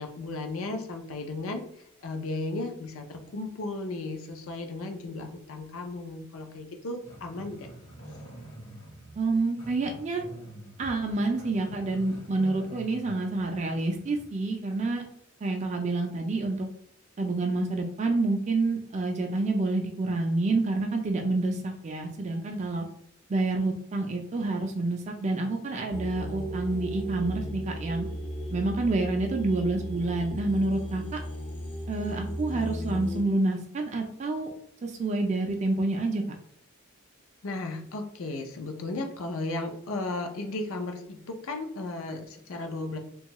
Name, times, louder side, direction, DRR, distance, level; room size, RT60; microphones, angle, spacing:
voice 1, 0.0-1.6 2.0-7.7 37.4-43.0, left 2 dB, 80° left, 4 dB, 0.5 m, -35 dB
Growling, 7.0-14.3, right 1 dB, 65° left, 0.9 m, -47 dB
voice 2, 9.2-10.2 10.8-15.0 15.4-16.7 17.2-22.8 23.3-28.1 28.5-31.2 31.9-34.5 34.8-36.2, right 2 dB, 35° right, 2 dB, 0.3 m, -28 dB
sound 1, 25.9-33.2, right 1 dB, 25° left, 0.5 m, -35 dB
2.6 x 2.3 x 2.9 m, 0.68 s
head